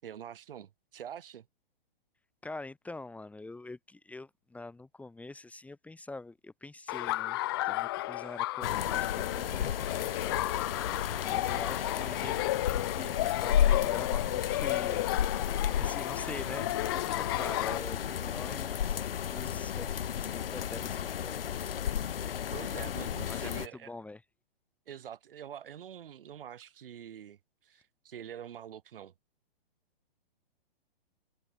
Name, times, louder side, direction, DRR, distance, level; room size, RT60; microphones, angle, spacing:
voice 1, 0.0-1.4 22.5-23.9 24.9-29.1, right 9 dB, 65° right, 7.4 m, -45 dB
voice 2, 2.4-7.4 7.6-10.5 11.2-15.0 15.8-21.8 23.3-24.2, left 2 dB, 5° left, 2.9 m, -45 dB
Laughter, 6.9-17.8, left 18 dB, 25° left, 0.4 m, -33 dB
sound 1, 8.6-23.7, left 9 dB, 70° left, 1.9 m, -33 dB
hypercardioid pair, 145°, 30 cm